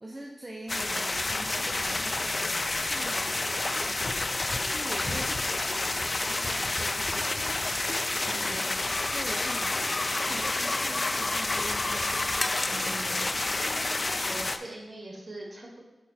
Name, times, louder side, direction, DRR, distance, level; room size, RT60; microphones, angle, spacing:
voice 1, 0.0-8.7 9.1-12.3 12.8-13.3, right 1 dB, 20° right, -2 dB, 0.8 m, -44 dB
sound 1, 0.7-14.6, left 2 dB, 40° left, 0.4 m, -29 dB
voice 2, 8.2-8.6 12.6-13.2 13.9-15.8, right 1 dB, 50° right, -1 dB, 1.9 m, -42 dB
6.3 x 4.8 x 4.3 m, 1.1 s
cardioid pair, 50°, 0 cm